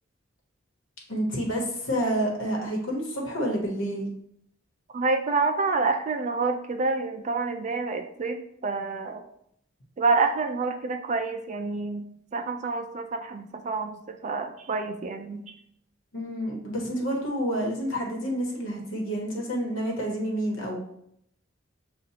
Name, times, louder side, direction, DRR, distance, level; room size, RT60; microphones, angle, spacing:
voice 1, 1.1-4.1 16.1-20.8, equal, 75° left, -1 dB, 1.2 m, -29 dB
voice 2, 4.9-9.2 10.0-12.0 12.3-15.4, right 3 dB, 35° right, 6 dB, 0.4 m, -28 dB
6.9 x 2.5 x 2.8 m, 0.73 s
head